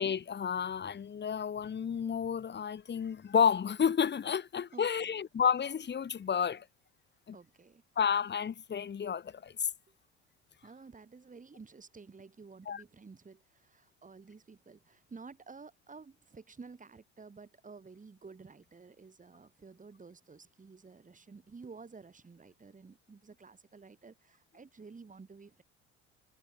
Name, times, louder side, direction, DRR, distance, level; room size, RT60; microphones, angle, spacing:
voice 1, 0.0-6.7 7.3-7.4 8.0-9.7 12.7-12.8, left 7 dB, 30° left, 1.8 m, -31 dB
voice 2, 4.7-5.2 7.3-7.8 10.6-25.6, right 4 dB, 20° right, 5.9 m, -52 dB
hypercardioid pair, 65°, 34 cm